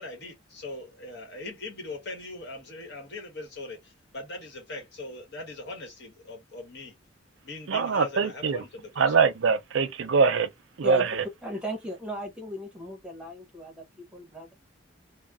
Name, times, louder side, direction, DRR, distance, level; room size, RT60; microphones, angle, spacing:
voice 1, 0.0-7.0 7.4-9.2, left 2 dB, 60° left, 1.3 m, -41 dB
voice 2, 7.7-8.6 9.0-10.5 10.8-11.2, right 5 dB, 85° right, 0.5 m, -23 dB
voice 3, 10.8-11.1 11.4-14.5, equal, 5° right, 0.9 m, -37 dB
3.1 x 2.1 x 2.3 m
head